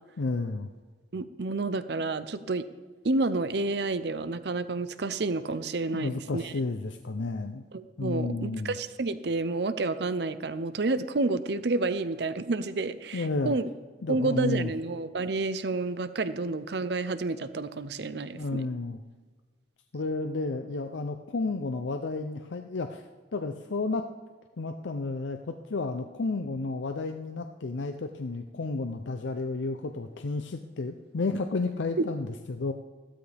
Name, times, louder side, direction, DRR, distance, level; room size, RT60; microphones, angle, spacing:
voice 1, 0.2-0.7 5.9-7.6 8.0-8.8 13.1-13.6 14.0-14.7 18.3-19.0 19.9-23.0 23.3-24.0 24.6-32.7, left 3 dB, 85° left, 6 dB, 0.6 m, -32 dB
voice 2, 1.1-2.7 3.0-6.5 7.7-13.6 14.1-18.6, right 3 dB, 65° right, 13 dB, 0.6 m, -30 dB
15.5 x 12.5 x 3.5 m, 1.4 s
head